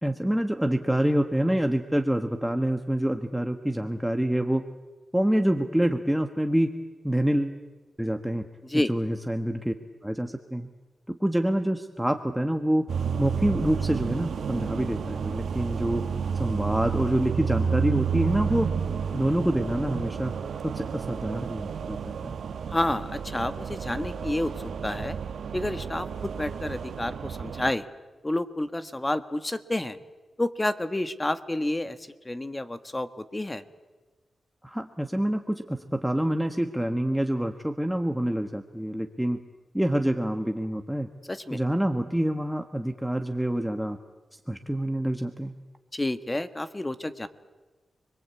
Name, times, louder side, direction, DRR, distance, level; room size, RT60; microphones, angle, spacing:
voice 1, 0.0-4.6 5.1-6.7 7.0-7.6 8.0-8.5 8.7-9.7 10.0-10.7 11.1-12.9 13.2-16.0 16.3-18.7 19.1-20.3 20.6-22.3 34.6-39.4 39.7-41.1 41.5-44.0 44.3-45.5, right 1 dB, 5° right, 6 dB, 1.3 m, -26 dB
sound 1, 12.9-27.7, right 6 dB, 80° right, 1.4 m, -31 dB
voice 2, 22.7-24.5 24.8-25.2 25.5-27.8 28.2-30.0 30.4-33.6 41.3-41.6 45.9-47.3, left 1 dB, 20° left, 11 dB, 1.5 m, -29 dB
29.5 x 22.0 x 8.4 m, 1.2 s
cardioid pair, 75°, 0 cm